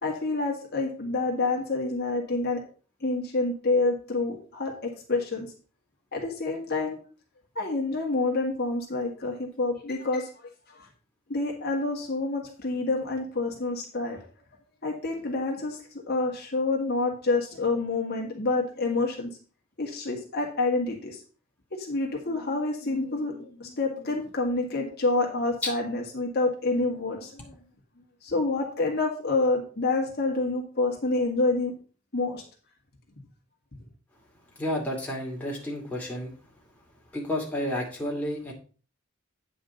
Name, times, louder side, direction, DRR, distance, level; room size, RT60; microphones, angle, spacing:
voice 1, 0.0-2.6 3.0-5.5 6.1-7.0 7.6-10.3 10.7-10.9 11.3-14.2 14.8-15.8 16.1-19.3 19.8-21.2 21.8-27.5 28.2-31.7 32.1-32.4, left 3 dB, 50° left, 0 dB, 1.8 m, -28 dB
voice 2, 34.6-36.3 37.1-38.5, left 1 dB, 5° left, -3 dB, 2.4 m, -31 dB
9.1 x 5.0 x 5.3 m, 0.38 s
head